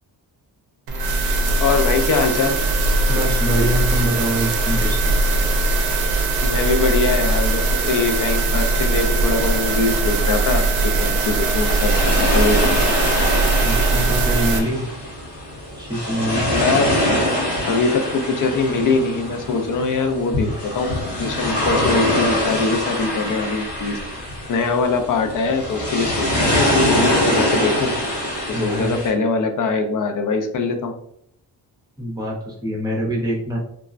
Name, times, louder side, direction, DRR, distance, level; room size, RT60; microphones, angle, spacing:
sound 1, 0.9-14.6, right 2 dB, 60° right, 0.6 m, -20 dB
voice 1, 1.6-2.6 6.4-12.7 16.5-17.0 17.7-24.0 24.5-27.9 28.5-30.9, left 4 dB, 50° left, 6 dB, 0.5 m, -22 dB
voice 2, 3.1-5.1 13.6-14.8 15.8-16.4 28.5-29.0 32.0-33.6, right 1 dB, 10° right, -4 dB, 0.7 m, -24 dB
sound 2, 9.9-29.1, left 1 dB, 80° left, 1.1 m, -24 dB
3.3 x 2.1 x 2.4 m, 0.68 s
wide cardioid pair, 155°, 41 cm